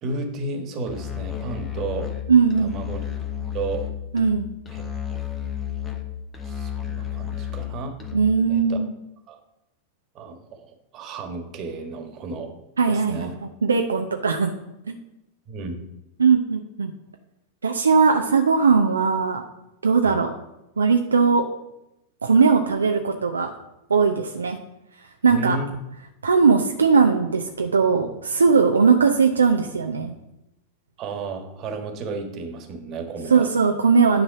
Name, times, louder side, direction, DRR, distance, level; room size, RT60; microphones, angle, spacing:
voice 1, 0.0-2.1 2.6-3.1 3.5-3.9 4.7-4.8 6.4-8.0 8.5-8.8 9.3-9.4 10.1-12.5 12.9-13.4 15.5-15.8 20.0-20.1 25.3-25.6 31.0-33.5, right 3 dB, 35° right, 4 dB, 1.6 m, -32 dB
Musical instrument, 0.9-8.5, left 9 dB, 20° left, 1.2 m, -32 dB
voice 2, 2.3-2.7 4.1-4.5 8.1-8.9 12.8-14.5 14.9-15.0 16.2-16.9 17.6-19.5 19.8-20.3 20.8-21.4 22.2-23.5 23.9-24.6 25.2-25.6 26.2-30.1 33.3-34.2, right 5 dB, 75° right, 4 dB, 0.6 m, -19 dB
10.0 x 4.1 x 5.8 m, 0.89 s
figure-of-eight pair, 90°, 0 cm